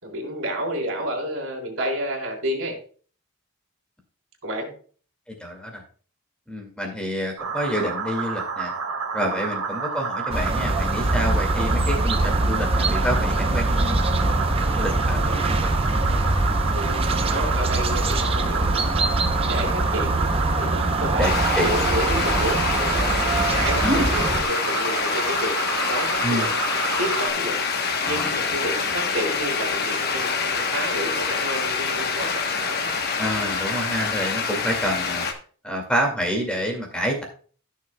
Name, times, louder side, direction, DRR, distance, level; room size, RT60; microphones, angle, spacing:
voice 1, 0.0-2.8 4.4-4.7 9.3-9.4 14.8-15.4 16.7-19.0 19.5-26.5 27.0-27.6 28.1-32.9, right 1 dB, 60° right, 0 dB, 3.7 m, -31 dB
voice 2, 5.4-5.8 6.5-8.7 9.1-14.0 14.7-16.1 21.2-21.9 23.8-24.1 26.2-26.5 28.0-28.9 33.2-35.3 35.6-37.2, equal, 5° left, 2 dB, 2.1 m, -28 dB
sound 1, 7.4-27.3, right 5 dB, 75° right, 1.4 m, -29 dB
sound 2, 10.3-24.4, right 2 dB, 25° right, 0.7 m, -23 dB
sound 3, 21.2-35.3, left 5 dB, 45° left, 1.1 m, -26 dB
15.5 x 6.6 x 2.3 m, 0.42 s
head